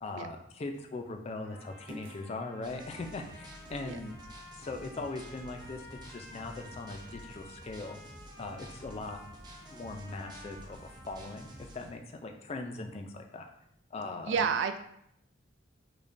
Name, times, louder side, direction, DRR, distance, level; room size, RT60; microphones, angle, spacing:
voice 1, 0.0-4.2 4.6-8.0 8.4-9.2 9.7-13.4 13.9-14.3, left 3 dB, 35° left, 4 dB, 0.3 m, -40 dB
sound 1, 0.7-1.0 1.9-2.4 3.7-3.9 9.0-9.3 10.9-11.2, equal, 90° right, 0.9 m, -50 dB
Trumpet, 1.4-11.8, left 1 dB, 50° right, 1.1 m, -53 dB
sound 2, 2.6-11.9, right 1 dB, 20° right, 0.6 m, -51 dB
voice 2, 14.3-14.8, right 6 dB, 70° right, 8 dB, 0.3 m, -30 dB
4.9 x 2.2 x 2.5 m, 0.73 s
head